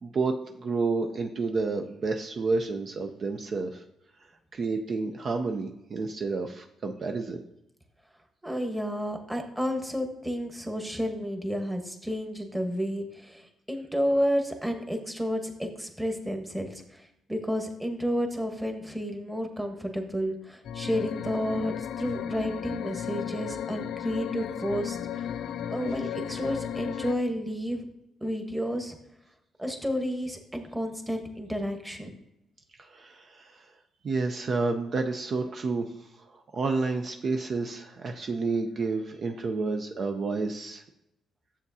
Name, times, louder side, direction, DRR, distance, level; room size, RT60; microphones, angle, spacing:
voice 1, 0.0-3.8 4.5-7.4 32.8-33.7 34.0-35.9 36.2-40.8, right 3 dB, 50° right, 4 dB, 0.5 m, -30 dB
voice 2, 8.4-17.0 17.3-25.3 25.7-27.8 28.2-29.0 29.6-32.2, equal, 5° right, 4 dB, 1.2 m, -31 dB
sound 1, 20.6-27.1, left 9 dB, 75° left, 0.3 m, -34 dB
9.5 x 7.1 x 2.7 m, 0.85 s
cardioid pair, 90°, 0 cm